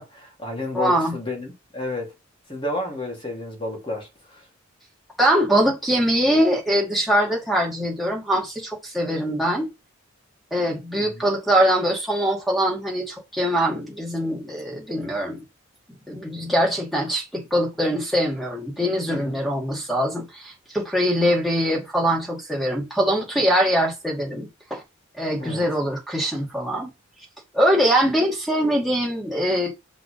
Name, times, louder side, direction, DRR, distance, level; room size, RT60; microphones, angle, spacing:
voice 1, 0.0-2.1 2.5-4.4 11.0-11.3 19.1-19.4 25.4-25.6, left 1 dB, 25° left, 3.0 m, -31 dB
voice 2, 0.7-1.1 5.2-9.7 10.5-15.4 16.1-24.8 25.2-26.9 27.5-29.7, equal, ahead, 2.4 m, -22 dB
5.8 x 3.5 x 5.2 m
head